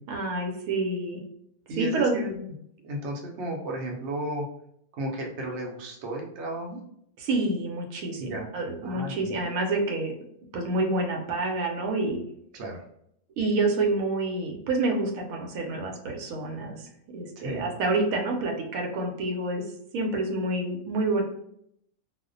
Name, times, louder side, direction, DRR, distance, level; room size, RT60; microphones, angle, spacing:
voice 1, 0.1-1.2 1.8-2.2 7.2-10.1 10.5-12.2 13.4-19.6 19.9-21.2, right 2 dB, 90° right, 1 dB, 1.0 m, -28 dB
voice 2, 1.7-2.4 2.8-4.4 5.0-6.8 8.2-8.4 8.8-9.1 12.5-12.8 17.4-17.7, right 1 dB, 65° right, 0 dB, 0.9 m, -33 dB
2.4 x 2.1 x 2.5 m, 0.72 s
omnidirectional pair, 1.4 m